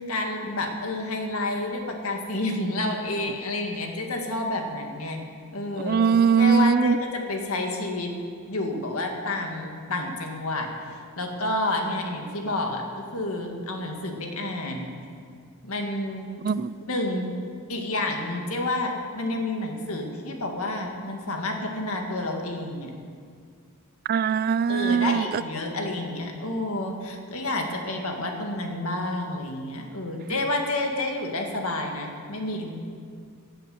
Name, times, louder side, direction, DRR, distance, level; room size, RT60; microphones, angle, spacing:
voice 1, 0.0-5.2 5.5-6.0 6.4-8.1 8.5-12.8 13.1-14.9 15.6-16.3 16.9-17.3 17.7-22.9 24.7-32.7, left 2 dB, 70° left, 2 dB, 2.0 m, -29 dB
voice 2, 5.8-7.0 16.4-16.7 24.1-25.2, right 6 dB, 45° right, 17 dB, 0.3 m, -21 dB
16.0 x 7.8 x 7.8 m, 2.2 s
head